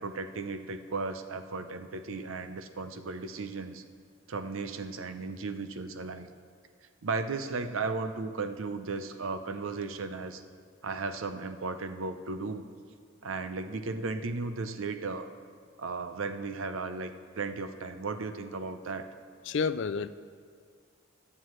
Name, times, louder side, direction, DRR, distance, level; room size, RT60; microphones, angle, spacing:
voice 1, 0.0-3.8 4.3-6.3 7.0-10.4 10.8-12.6 13.2-15.3 15.8-17.1 17.4-19.1, right 3 dB, 75° right, 9 dB, 0.6 m, -35 dB
voice 2, 19.5-20.1, left 5 dB, 60° left, 13 dB, 0.4 m, -29 dB
20.0 x 7.6 x 3.2 m, 2.1 s
head